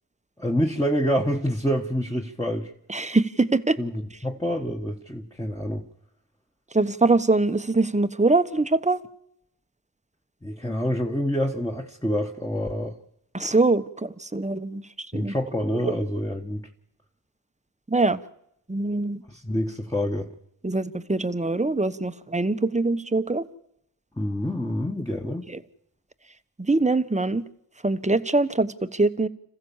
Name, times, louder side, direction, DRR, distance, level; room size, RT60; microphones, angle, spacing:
voice 1, 0.4-2.7 3.8-5.8 10.4-13.0 15.1-16.7 19.3-20.3 24.2-25.5, equal, 10° left, 1 dB, 1.6 m, -27 dB
voice 2, 2.9-3.8 6.7-9.0 13.3-15.3 17.9-18.2 18.7-19.2 20.6-23.4 26.7-27.4 27.8-29.3, right 3 dB, 15° right, 12 dB, 1.1 m, -23 dB
27.0 x 15.0 x 7.3 m, 0.78 s
cardioid pair, 40°, 45 cm